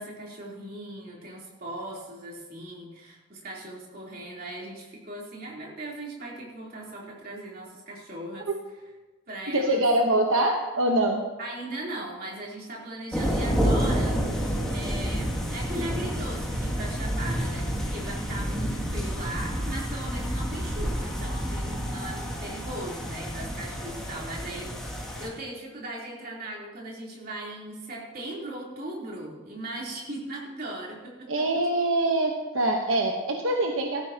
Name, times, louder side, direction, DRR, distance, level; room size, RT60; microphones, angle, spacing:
voice 1, 0.0-8.5 9.3-9.8 11.4-14.2 14.7-31.4, right 1 dB, 45° right, -3 dB, 3.5 m, -38 dB
voice 2, 9.5-11.2 31.3-34.0, right 1 dB, 80° right, 2 dB, 1.1 m, -24 dB
sound 1, 13.1-25.3, equal, 5° left, 2.3 m, -29 dB
17.0 x 14.0 x 2.9 m, 1.2 s
head